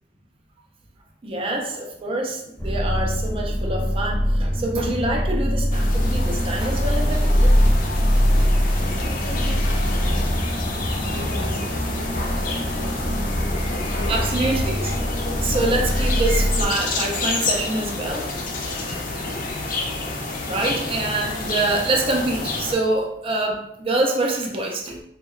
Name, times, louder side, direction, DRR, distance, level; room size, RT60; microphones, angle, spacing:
voice 1, 1.2-7.5 8.2-8.6 10.7-10.9 13.6-13.7 14.1-14.9 15.4-18.3 20.4-25.0, right 2 dB, 30° right, 1 dB, 0.4 m, -25 dB
sound 1, 2.6-16.7, equal, 10° left, 0.6 m, -22 dB
sound 2, 5.7-22.8, left 2 dB, 50° left, 0.4 m, -29 dB
voice 2, 8.2-10.2 10.9-14.3 19.0-19.8, left 1 dB, 90° left, -1 dB, 0.6 m, -40 dB
2.7 x 2.1 x 2.3 m, 0.76 s
head